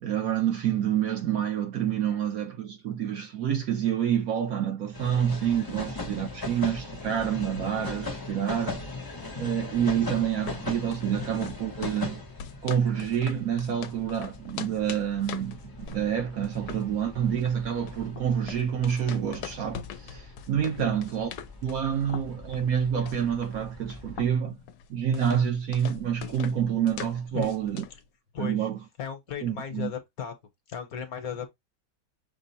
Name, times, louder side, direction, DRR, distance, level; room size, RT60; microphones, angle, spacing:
voice 1, 0.0-8.8 9.4-12.2 12.6-21.3 21.6-24.6 24.9-27.8 28.4-28.8 29.4-29.9, right 9 dB, 65° right, 1.0 m, -28 dB
sound 1, 4.9-24.3, left 3 dB, 30° left, 0.4 m, -40 dB
sound 2, 10.2-28.0, left 9 dB, 75° left, 1.2 m, -43 dB
voice 2, 28.3-28.7 29.0-30.3 30.7-31.5, left 7 dB, 60° left, 1.3 m, -35 dB
6.0 x 2.0 x 4.0 m
omnidirectional pair, 1.9 m